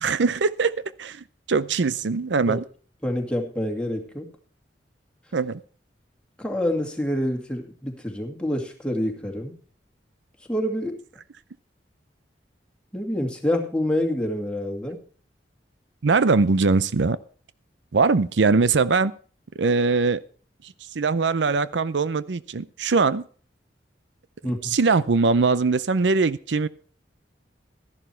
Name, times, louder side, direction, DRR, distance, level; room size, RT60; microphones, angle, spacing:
voice 1, 0.0-0.7 1.0-2.6 5.3-5.6 16.0-17.2 17.9-19.1 19.6-20.2 20.9-23.2 24.6-26.7, right 4 dB, 80° right, 16 dB, 0.6 m, -21 dB
voice 2, 3.0-4.3 6.4-9.5 10.5-11.0 12.9-15.0 24.4-24.8, left 1 dB, 5° left, 2 dB, 2.3 m, -27 dB
13.0 x 11.0 x 4.5 m, 0.41 s
head